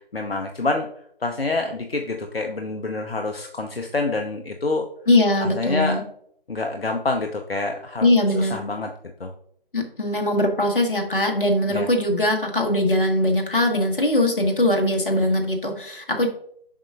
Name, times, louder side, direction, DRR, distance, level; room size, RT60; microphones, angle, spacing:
voice 1, 0.1-0.9 1.2-4.8 5.4-6.0 6.5-8.1 8.4-8.9 9.2-9.3 11.7-11.9, left 3 dB, 80° left, 4 dB, 0.8 m, -27 dB
voice 2, 5.1-6.0 8.0-8.6 9.7-16.3, left 1 dB, 60° left, 2 dB, 1.5 m, -21 dB
7.3 x 5.6 x 2.4 m, 0.68 s
figure-of-eight pair, 155°, 29 cm